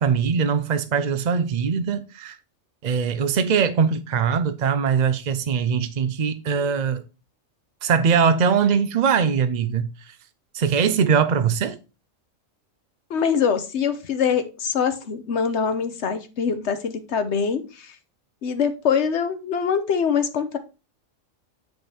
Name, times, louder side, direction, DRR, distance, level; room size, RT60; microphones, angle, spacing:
voice 1, 0.0-2.4 2.8-7.0 7.8-10.1 10.5-11.8, right 6 dB, 55° right, 0.5 m, -21 dB
voice 2, 13.1-17.9 18.4-20.6, left 6 dB, 60° left, 1.3 m, -24 dB
7.9 x 5.1 x 4.3 m
omnidirectional pair, 1.4 m